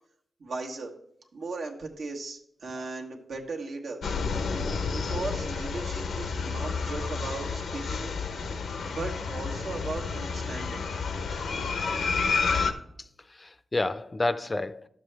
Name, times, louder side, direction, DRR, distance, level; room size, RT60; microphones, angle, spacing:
voice 1, 0.4-0.9 1.3-4.0 4.9-8.2 8.8-10.8, right 3 dB, 85° right, 1.3 m, -37 dB
sound 1, 4.0-12.7, left 5 dB, 90° left, 0.7 m, -30 dB
voice 2, 13.0-14.9, left 2 dB, 30° left, 0.4 m, -31 dB
11.0 x 7.3 x 3.3 m
cardioid pair, 70°, 0 cm